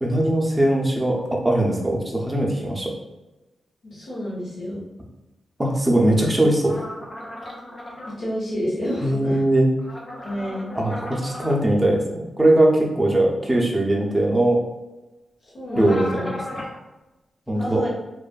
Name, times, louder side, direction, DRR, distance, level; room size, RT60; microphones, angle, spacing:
voice 1, 0.0-2.9 5.6-6.7 9.0-9.7 10.8-14.6 15.8-16.1 17.5-17.8, right 1 dB, 20° right, -1 dB, 0.6 m, -20 dB
voice 2, 3.8-4.9 8.1-9.4 10.2-10.7 15.4-16.3 17.5-17.9, equal, 65° left, -8 dB, 0.9 m, -29 dB
sound 1, 6.6-8.1 9.8-11.6 15.7-16.8, left 1 dB, 40° left, 0.7 m, -35 dB
2.5 x 2.4 x 2.3 m, 1.0 s
cardioid pair, 65°, 0 cm